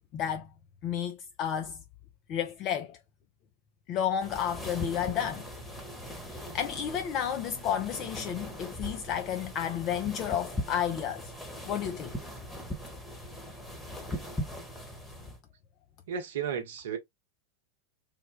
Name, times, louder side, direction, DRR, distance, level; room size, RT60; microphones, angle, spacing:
voice 1, 0.1-0.5 0.8-1.8 2.3-3.0 3.9-5.4 6.3-11.3 11.6-12.3, left 9 dB, 35° left, 0.5 m, -32 dB
sound 1, 4.2-15.4, left 1 dB, 5° left, 1.1 m, -40 dB
voice 2, 16.1-17.0, right 7 dB, 60° right, 0.8 m, -33 dB
3.4 x 2.1 x 3.3 m
figure-of-eight pair, 90°, 0 cm